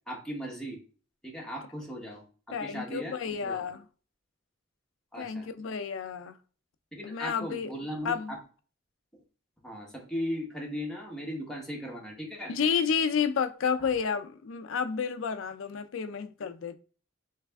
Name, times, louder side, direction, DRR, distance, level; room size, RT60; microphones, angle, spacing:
voice 1, 0.1-0.8 1.2-3.7 5.1-5.5 6.9-8.4 9.6-12.5, equal, ahead, 1.1 m, -37 dB
voice 2, 2.5-3.8 5.2-6.4 7.0-7.7 8.0-8.3 12.5-16.8, left 6 dB, 65° left, 0.4 m, -30 dB
3.3 x 3.2 x 3.4 m
head